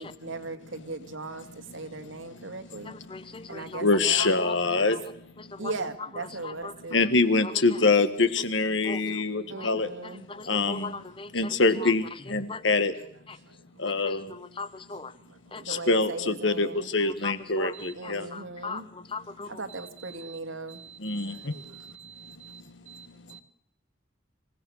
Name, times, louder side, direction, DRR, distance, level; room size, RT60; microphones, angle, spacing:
voice 1, 0.0-3.0 3.5-4.4 4.8-4.9 5.6-7.0 9.5-10.3 13.4-13.9 15.1-16.9 17.7-18.9 19.5-23.4, right 3 dB, 80° right, 8 dB, 2.1 m, -39 dB
voice 2, 2.9-3.8 4.2-4.6 4.9-5.0 5.4-5.7 6.4-6.7 8.8-9.2 9.6-9.7 10.0-11.9 12.5-12.6 13.8-15.1 15.5-15.8 17.0-17.7 18.0-19.6, left 3 dB, 25° left, 14 dB, 0.9 m, -39 dB
voice 3, 3.8-5.0 6.9-9.9 10.5-10.9 11.3-12.0 12.3-12.9 13.8-14.2 15.7-18.3 21.0-21.3, left 3 dB, 70° left, 11 dB, 1.7 m, -24 dB
26.0 x 17.0 x 6.5 m, 0.68 s
head